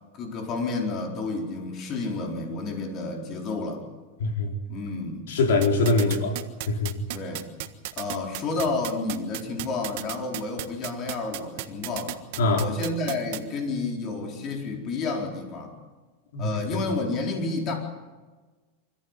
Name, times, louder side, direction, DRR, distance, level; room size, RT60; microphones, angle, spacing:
voice 1, 0.1-3.8 4.7-5.2 6.0-6.3 7.1-7.5 8.0-12.2 12.5-15.8 16.4-17.8, left 3 dB, 35° left, 2 dB, 4.4 m, -30 dB
voice 2, 4.2-4.5 5.3-6.3 6.7-7.0 12.4-12.7 16.3-16.5, left 3 dB, 90° left, 3 dB, 4.2 m, -23 dB
sound 1, 5.6-13.4, right 17 dB, 60° right, 1.5 m, -33 dB
25.0 x 14.5 x 9.8 m, 1.3 s
supercardioid pair, 150°, 0 cm